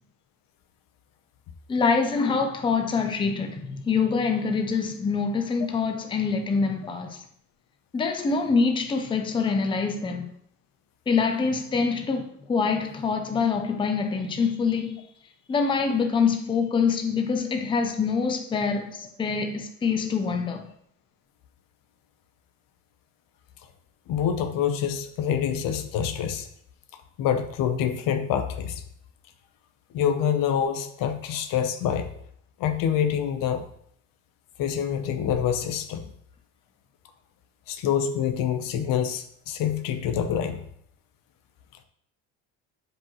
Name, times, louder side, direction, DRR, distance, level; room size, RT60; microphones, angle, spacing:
voice 1, 1.7-7.2 7.9-10.3 11.1-15.0 15.5-20.7, left 5 dB, 15° left, 0.6 m, -25 dB
voice 2, 24.1-26.5 27.2-28.8 29.9-32.1 32.6-33.6 34.6-36.1 37.7-40.6, left 8 dB, 80° left, 1.1 m, -26 dB
11.0 x 5.2 x 3.2 m
cardioid pair, 165°, 33 cm